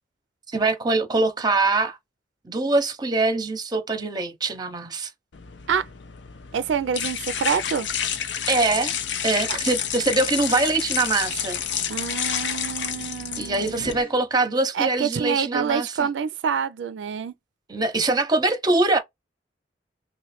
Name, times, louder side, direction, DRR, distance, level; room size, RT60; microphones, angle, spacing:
voice 1, 0.5-2.0 2.4-5.1 8.5-8.9 9.2-11.6 13.4-15.9 17.7-19.0, right 3 dB, 25° right, 0.7 m, -23 dB
sound 1, 5.3-13.9, left 8 dB, 75° left, 0.6 m, -29 dB
voice 2, 6.5-7.9 11.9-13.9 14.7-17.3, right 7 dB, 85° right, 0.4 m, -27 dB
sound 2, 13.7-15.0, equal, 30° left, 0.7 m, -43 dB
3.0 x 2.1 x 4.1 m
head